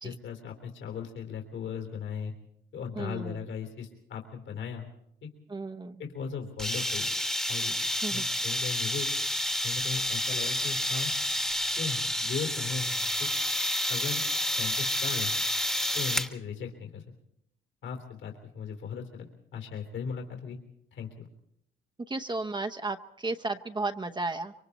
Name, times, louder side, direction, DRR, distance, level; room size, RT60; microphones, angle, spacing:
voice 1, 0.0-2.3 2.7-4.9 5.2-5.3 6.0-7.1 7.5-7.7 8.1-9.1 9.6-11.1 11.8-12.9 13.2-13.3 13.9-14.2 14.5-15.3 15.9-17.0 17.8-20.6 20.9-21.3, left 6 dB, 70° left, 3 dB, 3.4 m, -37 dB
voice 2, 2.9-3.4 5.5-6.0 8.0-8.2 22.1-24.5, right 3 dB, 20° right, 7 dB, 0.9 m, -34 dB
sound 1, 6.6-16.3, equal, 5° left, 1.3 m, -29 dB
26.5 x 23.5 x 4.2 m, 0.75 s
cardioid pair, 90°, 20 cm